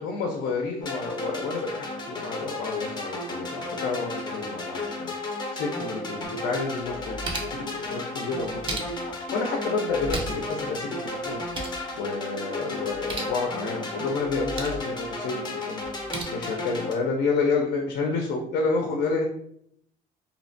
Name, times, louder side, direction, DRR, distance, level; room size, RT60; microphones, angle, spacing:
voice 1, 0.0-19.2, left 4 dB, 75° left, 1 dB, 0.5 m, -30 dB
sound 1, 0.8-16.9, left 2 dB, 25° left, 0.6 m, -33 dB
sound 2, 6.8-7.7 8.4-9.2 9.9-10.5 10.8-10.9 11.2-11.8 12.9-13.4 14.2-14.9 15.8-16.2, right 2 dB, 30° right, 0.5 m, -35 dB
2.7 x 2.1 x 2.6 m, 0.69 s
cardioid pair, 110°, 17 cm